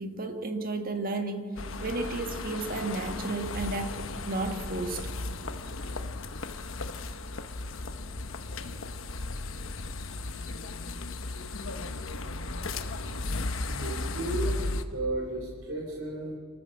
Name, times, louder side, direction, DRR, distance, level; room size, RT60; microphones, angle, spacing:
voice 1, 0.0-1.5 1.8-5.1, right 2 dB, 45° right, 5 dB, 1.7 m, -33 dB
sound 1, 1.6-14.8, left 2 dB, 70° left, 1.1 m, -35 dB
voice 2, 11.8-12.4 13.7-14.6 14.8-16.3, right 2 dB, 70° right, -1 dB, 3.6 m, -35 dB
25.5 x 13.5 x 7.8 m, 2.1 s
head